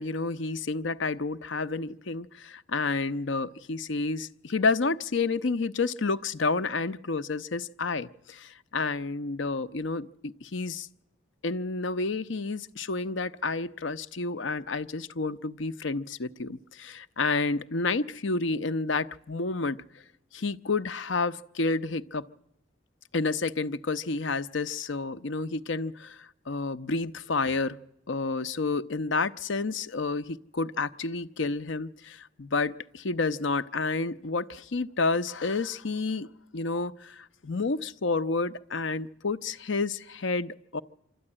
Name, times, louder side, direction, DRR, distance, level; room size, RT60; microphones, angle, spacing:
voice 1, 0.0-10.9 11.4-19.8 20.3-22.2 23.1-27.8 28.1-36.3 36.5-40.8, left 3 dB, 85° left, 13 dB, 0.7 m, -30 dB
25.5 x 13.5 x 9.8 m, 0.82 s
head